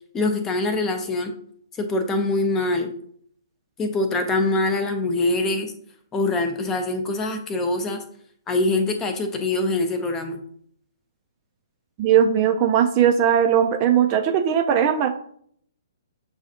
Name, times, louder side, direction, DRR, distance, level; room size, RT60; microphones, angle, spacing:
voice 1, 0.1-1.3 1.8-2.9 3.8-5.7 6.1-8.0 8.5-10.4, left 2 dB, 15° left, 6 dB, 0.6 m, -24 dB
voice 2, 12.0-15.1, right 9 dB, 30° right, 5 dB, 0.4 m, -19 dB
7.0 x 2.3 x 2.8 m, 0.63 s
figure-of-eight pair, 125°, 2 cm